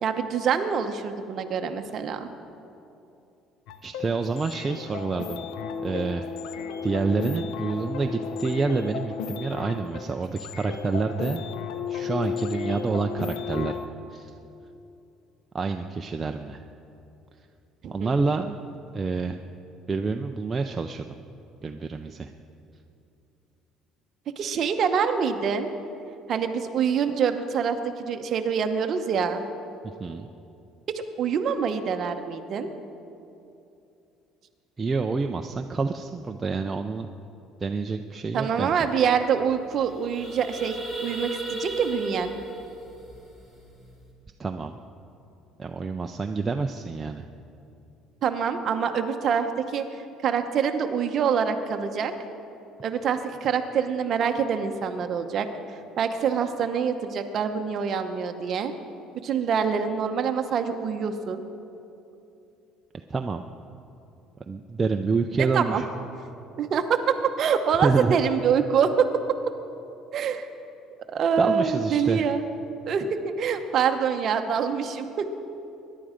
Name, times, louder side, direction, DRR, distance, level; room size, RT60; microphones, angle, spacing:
voice 1, 0.0-2.3 17.8-18.2 24.4-25.7 26.3-29.4 30.9-32.7 38.3-42.3 48.2-52.1 52.8-55.5 56.0-58.7 59.2-61.4 65.5-65.8 66.6-69.1 70.1-70.5 71.1-72.4 72.9-75.3, right 7 dB, 35° right, 6 dB, 0.8 m, -25 dB
sound 1, 3.7-13.9, left 6 dB, 75° left, 0.8 m, -34 dB
voice 2, 3.8-5.4 5.8-6.3 6.8-11.5 11.9-13.8 14.1-14.3 15.5-16.6 17.9-18.6 18.9-19.4 19.9-21.1 21.6-22.3 30.0-30.3 34.8-37.1 37.6-38.9 44.4-44.8 45.6-47.3 63.1-63.5 64.5-65.9 67.8-68.2 71.4-72.2, right 4 dB, 15° right, 4 dB, 0.4 m, -28 dB
sound 2, 38.8-38.9 39.1-39.3 39.7-44.0, right 2 dB, 10° left, 2.2 m, -36 dB
21.5 x 11.0 x 5.1 m, 2.8 s
cardioid pair, 180°, 0 cm